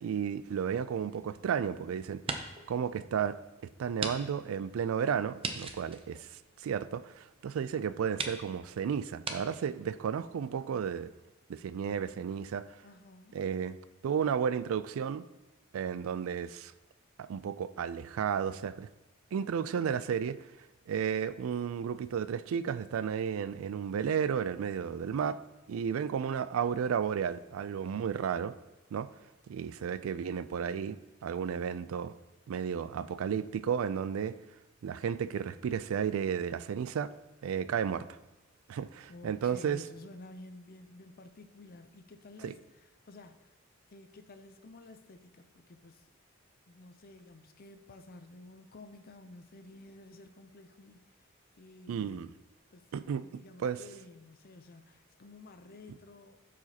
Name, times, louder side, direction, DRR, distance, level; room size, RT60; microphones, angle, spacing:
voice 1, 0.0-2.2 2.7-3.4 3.8-6.3 6.6-11.1 11.5-12.7 13.3-13.8 14.0-15.2 15.7-16.7 17.2-18.9 19.3-20.4 20.9-25.4 25.7-28.5 28.9-29.1 29.5-32.1 32.5-34.3 34.8-37.1 37.4-38.1 38.7-39.8 42.4-42.5 51.9-52.3 52.9-53.2 53.6-53.8, right 7 dB, 75° right, 0.3 m, -33 dB
sound 1, 0.8-1.7 2.1-2.7 3.1-3.2 4.0-4.2 4.4-4.5 5.4-7.0 7.6-7.7 8.1-8.4 9.2-9.4, right 4 dB, 25° right, 0.6 m, -38 dB
voice 2, 12.8-13.4 39.1-43.5 43.9-46.1 46.7-51.3 51.6-52.3 52.7-52.9 53.2-56.4, left 2 dB, 45° left, 0.5 m, -52 dB
11.5 x 5.0 x 2.9 m
head